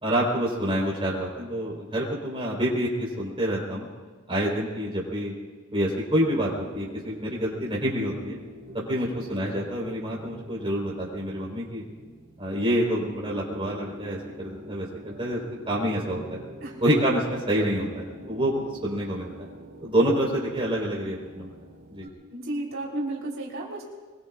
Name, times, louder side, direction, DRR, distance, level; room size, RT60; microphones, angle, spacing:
voice 1, 0.0-3.9 4.3-5.4 5.7-8.4 8.7-11.8 12.4-16.4 16.8-19.5 19.8-21.5 21.9-22.1, equal, 25° right, -4 dB, 4.3 m, -27 dB
sound 1, 6.2-22.1, equal, 50° right, 5.2 m, -45 dB
voice 2, 22.3-23.8, right 2 dB, 65° right, -3 dB, 3.8 m, -33 dB
24.5 x 22.5 x 2.5 m, 1.4 s
head